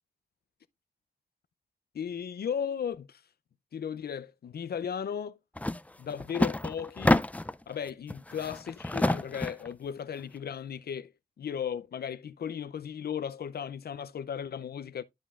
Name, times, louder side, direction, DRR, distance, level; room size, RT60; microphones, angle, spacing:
voice 1, 1.9-3.2 3.7-5.4 6.0-7.2 7.7-11.1 11.4-15.0, left 8 dB, 75° left, 0.5 m, -36 dB
sound 1, 5.6-5.8 6.1-7.6 8.1-9.7, left 1 dB, 10° left, 0.4 m, -28 dB
12.0 x 5.3 x 2.4 m
cardioid pair, 60°, 16 cm